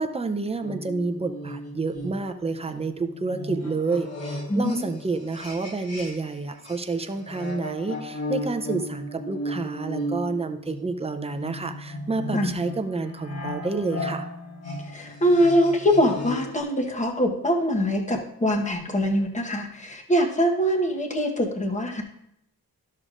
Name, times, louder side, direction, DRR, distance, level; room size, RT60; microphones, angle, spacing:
voice 1, 0.0-14.3, right 3 dB, 15° right, 7 dB, 0.5 m, -29 dB
sound 1, 0.6-6.4 6.6-16.6, left 1 dB, 45° left, 1.5 m, -35 dB
voice 2, 4.5-4.9 12.3-12.5 14.9-22.0, equal, 20° left, 2 dB, 1.1 m, -23 dB
13.0 x 6.6 x 2.5 m, 0.78 s
wide cardioid pair, 155°, 37 cm